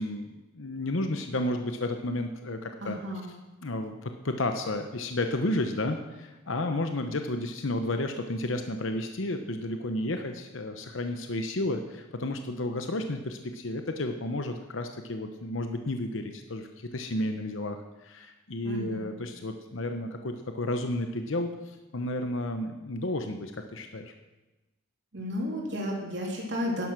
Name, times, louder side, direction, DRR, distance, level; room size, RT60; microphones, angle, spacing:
voice 1, 0.0-3.0 3.6-24.1, left 1 dB, 70° left, 6 dB, 0.9 m, -32 dB
voice 2, 2.8-3.3 18.6-19.1 25.1-26.9, equal, 60° right, -1 dB, 3.2 m, -33 dB
11.0 x 11.0 x 6.1 m, 1.1 s
head